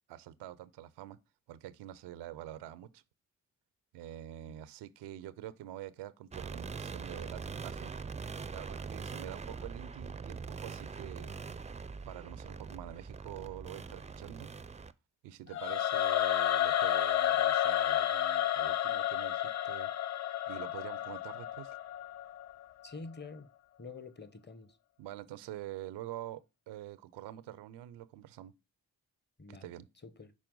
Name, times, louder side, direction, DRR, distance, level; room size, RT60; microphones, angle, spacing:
voice 1, 0.1-1.2 1.5-3.0 3.9-7.9 8.5-11.4 12.0-14.5 15.2-19.9 20.3-21.8 25.0-28.5 29.5-29.9, right 13 dB, 85° right, 0.6 m, -46 dB
sound 1, 6.3-14.9, right 5 dB, 20° right, 0.4 m, -43 dB
Singing / Musical instrument, 15.5-22.6, left 11 dB, 45° left, 0.5 m, -31 dB
voice 2, 22.8-23.5 23.8-24.8 29.4-29.7 30.0-30.3, left 4 dB, 25° left, 0.9 m, -47 dB
6.1 x 4.3 x 3.8 m
supercardioid pair, 40°, 40 cm